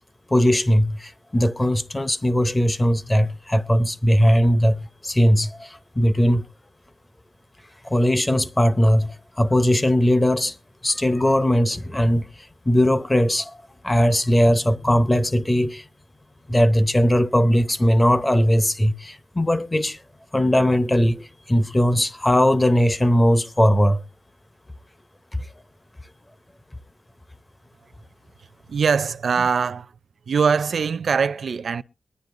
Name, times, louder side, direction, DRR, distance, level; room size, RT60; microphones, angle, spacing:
voice 1, 0.3-6.4 7.8-10.6 10.8-12.3 12.7-13.6 13.8-15.8 16.5-20.0 20.3-24.0 25.3-25.5, equal, 15° left, 0.7 m, -19 dB
voice 2, 28.7-29.9 30.3-31.8, right 6 dB, 65° right, 0.5 m, -22 dB
22.5 x 10.0 x 2.6 m
wide cardioid pair, 145°, 0 cm